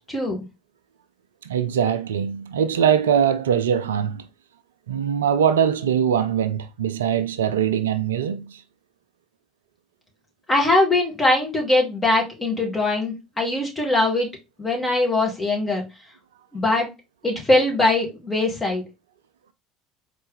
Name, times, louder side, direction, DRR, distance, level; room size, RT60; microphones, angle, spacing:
voice 1, 0.1-0.4 10.5-14.3 14.6-15.8 16.5-16.9 17.2-18.8, left 2 dB, 20° left, 2.3 m, -21 dB
voice 2, 1.4-4.3 4.9-8.6, right 8 dB, 75° right, 0.3 m, -22 dB
4.2 x 3.3 x 3.4 m
figure-of-eight pair, 65°, 0 cm